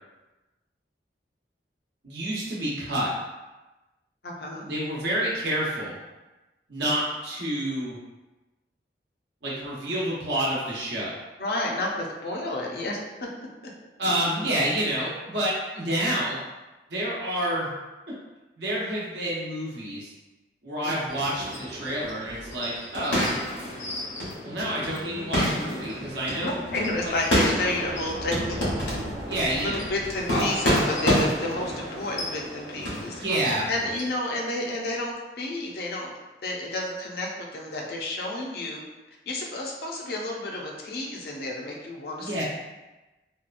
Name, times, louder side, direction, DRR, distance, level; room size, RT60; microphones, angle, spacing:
voice 1, 2.0-3.1 4.6-6.0 6.7-8.0 9.4-11.1 14.0-16.4 16.9-17.7 18.6-20.1 20.6-23.3 24.4-26.6 29.3-29.9 33.2-33.7 42.2-42.4, right 1 dB, 80° right, -6 dB, 0.9 m, -28 dB
voice 2, 4.2-4.7 11.4-13.3 15.9-16.1 20.8-20.9 26.4-28.6 29.6-33.2 33.7-36.1 36.4-38.8 39.3-42.4, left 1 dB, 60° left, -1 dB, 0.5 m, -31 dB
sound 1, 21.1-34.0, equal, 80° left, 0.9 m, -29 dB
sound 2, 25.2-32.2, equal, 40° right, 0.7 m, -41 dB
2.8 x 2.3 x 2.4 m, 1.1 s
head